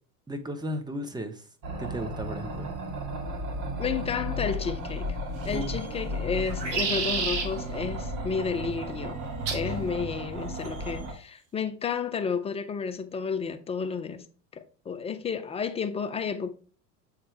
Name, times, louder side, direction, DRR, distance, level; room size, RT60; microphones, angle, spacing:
voice 1, 0.3-1.4 1.8-2.7 5.5-5.8, equal, 10° right, 1.0 m, -35 dB
sound 1, 1.6-11.1, equal, 40° right, 2.0 m, -34 dB
voice 2, 3.8-5.2 5.5-9.2 9.5-14.3 14.5-16.5, left 6 dB, 15° left, 0.3 m, -31 dB
sound 2, 5.4-5.9 6.4-7.5 9.5-9.7 10.7-11.1, right 5 dB, 85° right, 1.5 m, -31 dB
7.2 x 4.4 x 3.3 m
hypercardioid pair, 90°, 48 cm